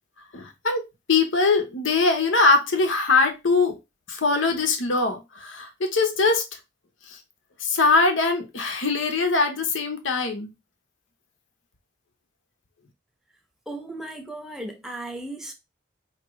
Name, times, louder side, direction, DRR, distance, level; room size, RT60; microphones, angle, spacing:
voice 1, 0.3-0.8 1.1-3.8 4.1-6.4 7.1-7.2 7.6-10.5, left 3 dB, 85° left, 1.0 m, -22 dB
voice 2, 13.7-15.5, right 1 dB, ahead, 0.8 m, -36 dB
4.9 x 3.0 x 3.2 m
head